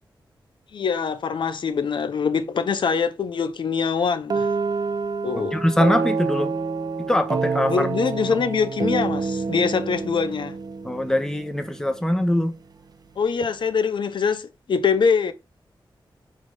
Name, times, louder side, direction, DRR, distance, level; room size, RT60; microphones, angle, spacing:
voice 1, 0.7-4.5 5.2-5.6 7.7-10.6 13.2-15.3, left 6 dB, 70° left, 0.8 m, -23 dB
sound 1, 4.3-12.0, right 4 dB, 50° right, 0.7 m, -27 dB
voice 2, 5.5-6.5 7.1-7.9 10.8-12.5, left 1 dB, 5° left, 1.1 m, -22 dB
8.5 x 3.5 x 5.5 m
wide cardioid pair, 160°, 9 cm